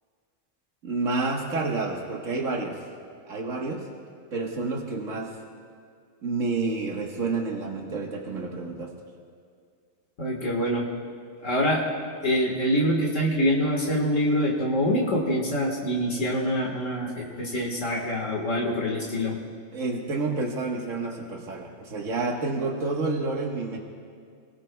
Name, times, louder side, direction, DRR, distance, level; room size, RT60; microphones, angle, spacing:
voice 1, 0.8-2.8 3.2-3.9 4.3-5.4 6.2-8.9 19.7-23.8, right 3 dB, 80° right, -1 dB, 1.8 m, -29 dB
voice 2, 10.2-10.9 11.4-11.8 12.2-19.4, equal, 75° left, -1 dB, 2.0 m, -25 dB
29.5 x 18.0 x 2.3 m, 2.2 s
omnidirectional pair, 1.3 m